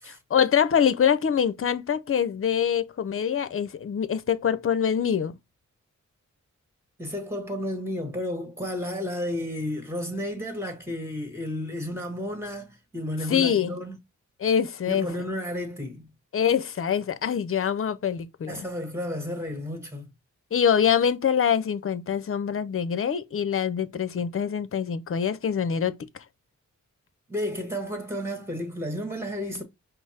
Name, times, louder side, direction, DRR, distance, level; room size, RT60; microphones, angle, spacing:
voice 1, 0.1-5.4 13.3-13.7 14.4-15.1 16.3-18.7 20.5-26.0, left 8 dB, 45° left, 0.6 m, -24 dB
voice 2, 7.0-14.0 14.8-16.1 18.5-20.1 27.3-29.6, left 1 dB, 10° right, 1.7 m, -32 dB
5.2 x 2.0 x 4.2 m
cardioid pair, 75°, 30 cm